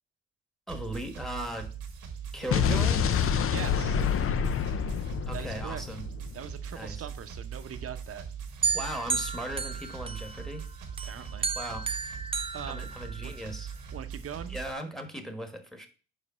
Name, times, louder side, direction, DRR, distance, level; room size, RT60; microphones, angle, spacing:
voice 1, 0.7-1.7 2.3-3.1 5.3-6.0 6.7-7.1 8.7-10.7 11.5-11.9 12.6-13.7 14.5-15.9, right 1 dB, ahead, 5 dB, 1.3 m, -37 dB
sound 1, 0.7-14.7, right 7 dB, 85° right, 1.4 m, -41 dB
voice 2, 2.4-3.0 3.5-4.0 5.3-5.8 6.3-8.2 11.0-11.5 12.5-12.9 13.2-13.3 13.9-14.6, right 8 dB, 50° right, 10 dB, 0.8 m, -41 dB
Explosion, 2.5-6.6, left 8 dB, 45° left, 0.6 m, -27 dB
sound 2, 8.6-10.6 11.0-13.5, right 5 dB, 20° right, 0.5 m, -33 dB
5.0 x 4.9 x 5.5 m, 0.38 s
cardioid pair, 90°, 30 cm